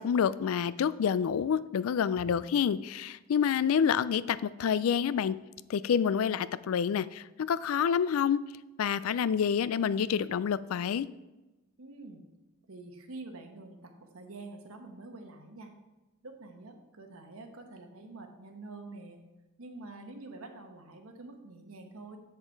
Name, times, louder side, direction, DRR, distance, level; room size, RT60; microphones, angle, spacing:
voice 1, 0.0-5.4 5.7-8.4 8.8-11.1, left 7 dB, 90° left, 18 dB, 0.3 m, -28 dB
voice 2, 11.8-12.3 12.7-15.7 16.2-19.2 19.6-22.2, right 2 dB, 90° right, 4 dB, 1.2 m, -47 dB
7.6 x 6.7 x 4.5 m, 1.1 s
head